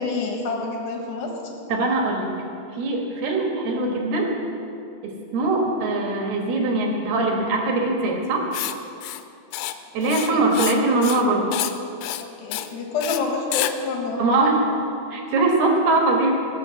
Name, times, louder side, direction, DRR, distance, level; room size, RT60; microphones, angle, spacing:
voice 1, 0.0-1.3 10.3-10.4 12.2-14.2, left 4 dB, 70° left, 1 dB, 3.3 m, -27 dB
voice 2, 1.7-2.3 2.7-4.3 5.0-8.5 9.9-11.5 14.2-14.7 15.1-16.3, right 2 dB, 65° right, 0 dB, 3.2 m, -22 dB
Writing, 8.5-8.7 9.0-9.2 9.5-9.7 10.0-10.8 11.0-11.3 11.5-11.7 12.0-12.2 12.5-12.7 13.0-13.2 13.5-13.7, left 14 dB, 90° left, 3.0 m, -28 dB
18.5 x 7.0 x 7.6 m, 2.6 s
omnidirectional pair, 5.4 m